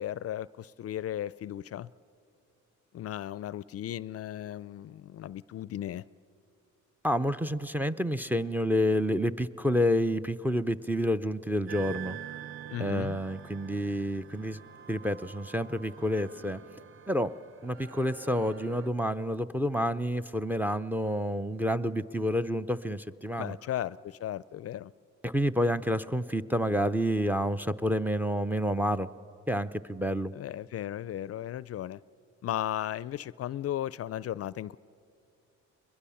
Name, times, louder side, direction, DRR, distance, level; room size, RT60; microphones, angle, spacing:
voice 1, 0.0-1.9 2.9-6.0 12.7-13.2 23.4-24.9 30.3-32.0 32.4-34.8, left 12 dB, 50° left, 19 dB, 0.4 m, -36 dB
voice 2, 7.0-12.2 12.8-14.6 14.9-16.6 17.1-17.3 17.6-23.6 25.2-29.1 29.5-30.3, equal, 5° right, 12 dB, 0.5 m, -29 dB
sound 1, 11.7-18.9, right 9 dB, 45° right, 0.9 m, -46 dB
21.5 x 21.5 x 7.1 m, 2.4 s
cardioid pair, 90°, 30 cm